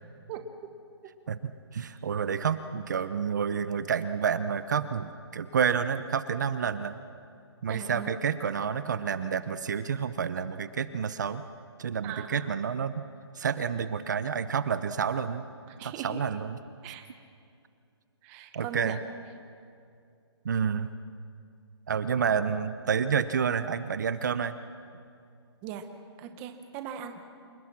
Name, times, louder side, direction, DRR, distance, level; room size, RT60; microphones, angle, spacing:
voice 1, 1.7-7.0 7.6-11.4 11.8-13.0 13.3-15.4 15.8-16.6 18.5-19.0 20.4-20.9 21.9-24.5, right 7 dB, 40° right, 13 dB, 0.9 m, -29 dB
voice 2, 7.7-8.1 12.0-12.4 15.8-16.2 16.8-17.0 18.2-19.0 25.6-25.8 26.2-27.2, right 9 dB, 15° right, 7 dB, 0.9 m, -39 dB
27.5 x 20.5 x 6.1 m, 2.4 s
hypercardioid pair, 175°, 14 cm